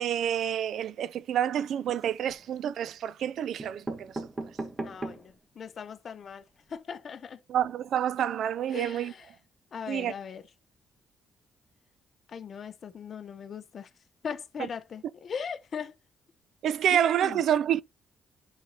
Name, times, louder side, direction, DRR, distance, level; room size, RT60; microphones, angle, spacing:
voice 1, 0.0-4.1 7.5-9.1 9.9-10.1 16.6-17.8, right 10 dB, 70° right, 0.4 m, -28 dB
sound 1, 1.8-2.5 3.2-3.3 3.6-5.4 5.9-6.0 6.2-6.3 6.6-6.7, right 2 dB, 20° right, 1.4 m, -38 dB
voice 2, 4.8-7.4 8.7-9.3 9.7-10.4 12.3-13.9 14.2-16.0 16.9-17.4, left 6 dB, 50° left, 0.7 m, -39 dB
11.0 x 4.1 x 2.7 m
cardioid pair, 90°, 0 cm